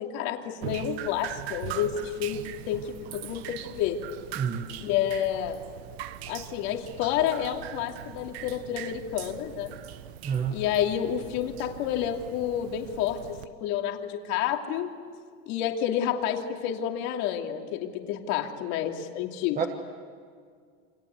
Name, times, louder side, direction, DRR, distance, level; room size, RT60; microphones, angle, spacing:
voice 1, 0.0-4.0 4.8-5.6 6.3-9.8 10.5-14.9 15.5-19.7, left 10 dB, 55° left, 3 dB, 2.9 m, -29 dB
Drip, 0.6-13.5, right 12 dB, 80° right, 1.5 m, -41 dB
voice 2, 4.4-4.7 10.2-10.6 19.6-19.7, right 7 dB, 25° right, 4 dB, 1.5 m, -28 dB
29.0 x 25.0 x 8.2 m, 2.1 s
supercardioid pair, 150°, 31 cm